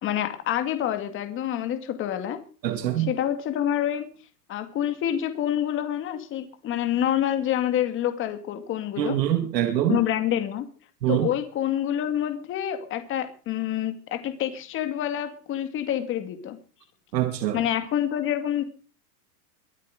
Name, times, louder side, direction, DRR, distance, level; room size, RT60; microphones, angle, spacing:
voice 1, 0.0-2.4 3.0-4.1 4.5-9.2 9.9-10.7 11.1-16.6 17.5-18.6, left 11 dB, 25° left, 2.2 m, -27 dB
voice 2, 2.6-3.1 9.0-10.0 11.0-11.3 17.1-17.6, right 12 dB, 85° right, 2.3 m, -24 dB
23.0 x 8.6 x 5.0 m
supercardioid pair, 155°, 48 cm